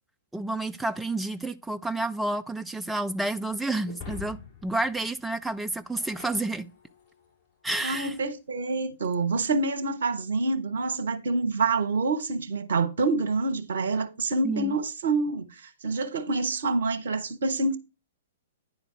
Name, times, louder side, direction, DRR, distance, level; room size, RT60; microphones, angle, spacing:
voice 1, 0.3-6.7 7.6-8.1 14.4-14.7, right 2 dB, 5° right, 0.5 m, -30 dB
Shatter, 3.9-7.3, left 7 dB, 20° left, 5.3 m, -45 dB
voice 2, 7.8-17.8, right 3 dB, 60° right, 1.1 m, -27 dB
9.9 x 4.0 x 5.8 m
figure-of-eight pair, 110°, 0 cm